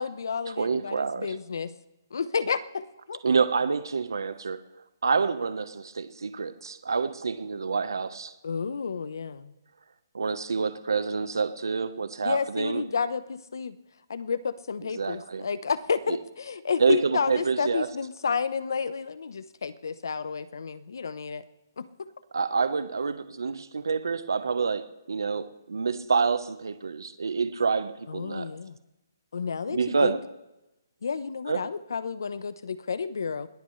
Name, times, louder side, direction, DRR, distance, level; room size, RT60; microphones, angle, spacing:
voice 1, 0.0-1.7 2.1-2.8 3.1-3.2 8.4-9.5 12.2-13.8 14.1-21.4 21.8-22.1 28.1-28.8 29.3-30.2 31.0-33.5, left 5 dB, 70° left, 14 dB, 1.0 m, -31 dB
voice 2, 0.6-1.3 3.2-4.6 5.0-8.3 10.1-12.8 15.0-15.4 16.1-16.2 16.8-17.9 22.3-24.8 25.1-28.5 29.7-30.2 31.5-31.6, right 5 dB, 85° right, 11 dB, 1.1 m, -27 dB
21.0 x 19.5 x 3.3 m, 0.96 s
hypercardioid pair, 165°, 2 cm